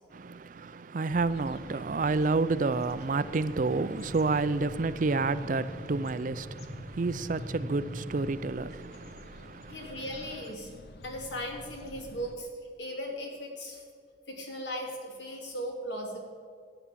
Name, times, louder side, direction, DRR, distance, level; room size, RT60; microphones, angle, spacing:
voice 1, 0.1-10.0, right 3 dB, 50° right, 0.5 m, -30 dB
sound 1, 1.1-12.4, left 1 dB, 60° left, 0.9 m, -50 dB
sound 2, 3.2-8.3, equal, 35° left, 2.0 m, -43 dB
voice 2, 9.7-10.7 11.0-12.5 12.8-13.8 14.3-16.2, equal, 90° left, 2.7 m, -37 dB
12.5 x 9.3 x 7.4 m
head